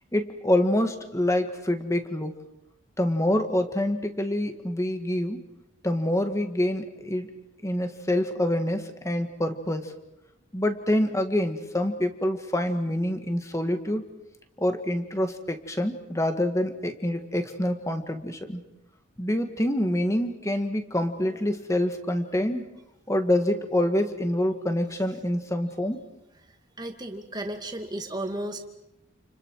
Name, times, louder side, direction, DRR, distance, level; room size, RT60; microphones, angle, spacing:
voice 1, 0.1-2.3 3.0-5.4 5.8-7.3 7.6-9.9 10.5-14.0 14.6-18.6 19.2-22.6 23.1-26.0, left 1 dB, 15° left, 7 dB, 1.8 m, -26 dB
voice 2, 26.8-28.7, right 1 dB, 20° right, 4 dB, 2.3 m, -34 dB
29.5 x 29.5 x 4.8 m, 0.87 s
head